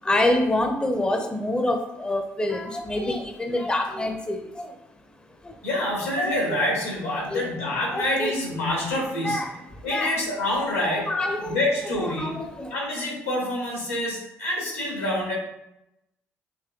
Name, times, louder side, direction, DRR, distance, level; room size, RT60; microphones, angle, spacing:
voice 1, 0.0-4.7 5.4-5.5 6.2-6.3 7.1-7.4 7.9-8.3 9.2-9.4 9.9-10.1 10.8-11.6 12.2-12.7, left 1 dB, 15° left, 4 dB, 0.6 m, -26 dB
voice 2, 5.6-9.6 9.8-15.3, left 1 dB, 80° left, -3 dB, 1.4 m, -27 dB
6.7 x 3.0 x 2.4 m, 0.88 s
figure-of-eight pair, 45°, 7 cm